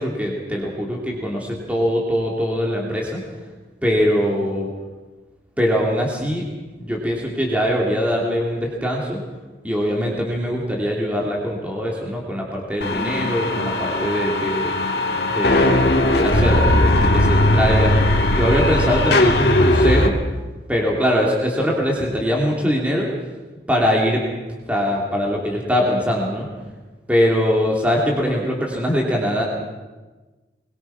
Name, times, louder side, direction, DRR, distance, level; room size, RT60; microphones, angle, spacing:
voice 1, 0.0-3.2 3.8-4.7 5.6-6.4 6.8-9.2 9.6-14.7 15.2-17.9 18.3-20.1 20.7-23.1 23.7-24.2 24.7-26.5 27.1-29.4, equal, 10° right, -2 dB, 3.1 m, -22 dB
sound 1, 12.8-20.1, left 1 dB, 60° left, 2.1 m, -18 dB
23.0 x 21.5 x 6.0 m, 1.2 s
head